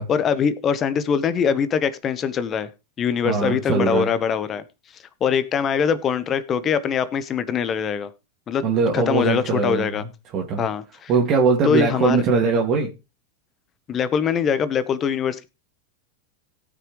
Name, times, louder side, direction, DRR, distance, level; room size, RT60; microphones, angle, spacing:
voice 1, 0.1-2.7 3.0-4.6 5.2-8.1 8.5-8.6 8.9-10.0 10.6-11.1 11.6-12.2 13.9-15.5, left 7 dB, 30° left, 1.1 m, -22 dB
voice 2, 3.2-4.1 8.6-10.0 10.3-10.6 11.1-12.9, right 4 dB, 40° right, 2.3 m, -21 dB
17.5 x 6.2 x 3.2 m
hypercardioid pair, 105°, 0 cm